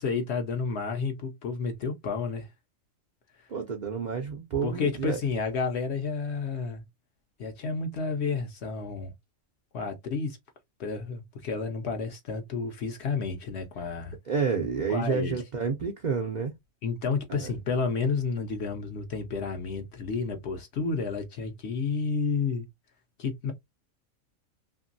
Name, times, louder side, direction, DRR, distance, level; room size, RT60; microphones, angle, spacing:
voice 1, 0.0-2.5 3.4-3.5 4.6-6.8 7.4-9.1 9.7-10.4 10.8-14.2 14.9-15.4 16.8-22.7 23.2-23.5, left 4 dB, 65° left, 0.7 m, -31 dB
voice 2, 3.5-5.2 14.3-16.5 17.3-17.5, right 5 dB, 65° right, 0.4 m, -29 dB
2.9 x 2.6 x 2.5 m
omnidirectional pair, 1.5 m